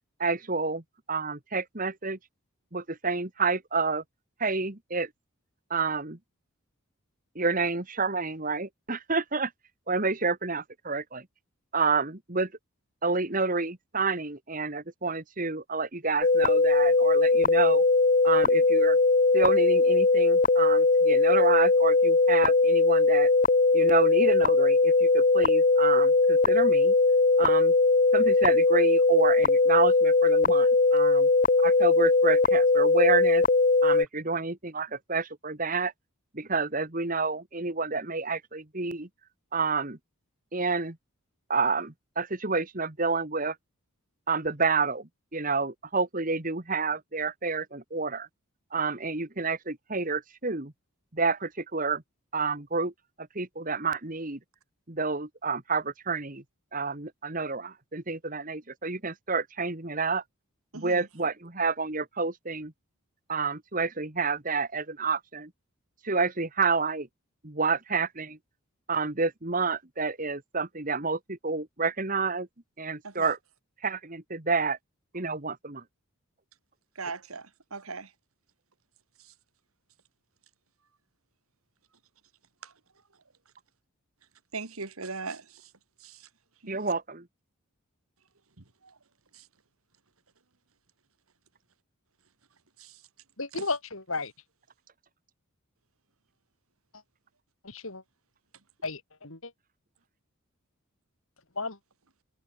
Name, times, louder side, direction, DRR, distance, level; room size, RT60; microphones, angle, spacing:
voice 1, 0.2-0.8 1.1-2.2 2.7-4.0 4.4-5.1 5.7-6.2 7.4-9.5 9.9-11.3 11.7-12.5 13.0-17.8 18.2-19.0 19.3-23.3 23.7-26.9 27.4-27.7 28.1-31.3 31.6-33.4 33.8-35.9 36.3-39.1 39.5-40.0 40.5-41.0 41.5-43.6 44.3-48.3 48.7-50.7 51.1-52.0 52.3-52.9 53.4-54.4 54.9-56.4 56.7-60.2 60.7-62.7 63.3-65.5 66.0-67.1 67.4-68.4 68.9-72.5 72.8-73.4 73.8-74.8 75.1-75.8 86.7-87.3, right 4 dB, 35° right, 1.8 m, -29 dB
sound 1, 16.2-34.1, left 3 dB, 40° left, 0.7 m, -20 dB
voice 2, 60.7-61.1 73.0-73.3 77.0-78.1 79.2-79.3 82.6-82.7 84.5-85.7 86.0-86.3 86.6-86.9 88.6-89.0 89.3-89.5 92.8-93.0 93.5-93.7, right 4 dB, 75° right, 2.3 m, -40 dB
voice 3, 93.4-94.3 97.6-98.0 98.8-99.5 101.6-101.8, left 3 dB, 65° left, 4.1 m, -33 dB
head